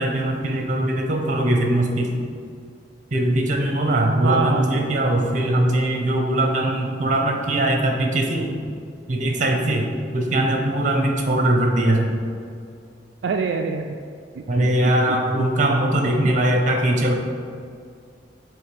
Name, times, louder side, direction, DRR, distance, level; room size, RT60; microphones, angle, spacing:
voice 1, 0.0-2.1 3.1-8.5 9.1-12.1 14.5-17.1, right 1 dB, 45° right, 2 dB, 0.9 m, -21 dB
voice 2, 4.2-5.0 13.2-14.0 14.4-15.4 16.2-16.3, right 4 dB, 70° right, 3 dB, 0.3 m, -26 dB
7.9 x 3.1 x 5.1 m, 2.3 s
head